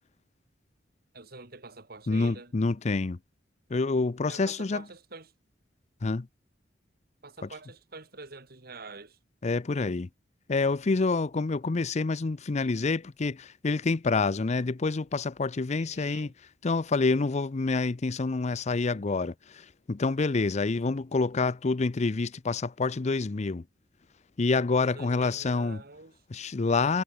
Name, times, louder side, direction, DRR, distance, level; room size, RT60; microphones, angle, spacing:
voice 1, 1.1-2.5 4.3-5.3 7.2-9.2 15.7-16.3 24.8-26.2, right 3 dB, 55° right, 3.2 m, -46 dB
voice 2, 2.1-3.2 3.7-4.8 6.0-6.3 9.4-10.1 10.5-16.3 16.6-23.6 24.4-25.8 26.3-27.0, left 3 dB, 40° left, 0.5 m, -27 dB
head